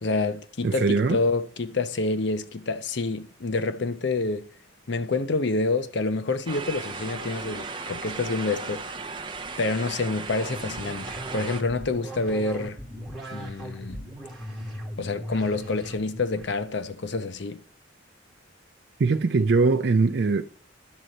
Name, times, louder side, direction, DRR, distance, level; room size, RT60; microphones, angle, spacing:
voice 1, 0.0-4.5 4.9-9.0 9.6-12.8 13.3-14.0 15.0-17.6, left 3 dB, 60° left, 0.6 m, -28 dB
voice 2, 0.6-1.2 19.0-20.4, right 4 dB, 55° right, 0.4 m, -21 dB
sound 1, 6.5-11.6, right 4 dB, 25° right, 0.7 m, -36 dB
sound 2, 10.3-16.7, equal, ahead, 2.6 m, -38 dB
11.0 x 4.0 x 7.8 m
head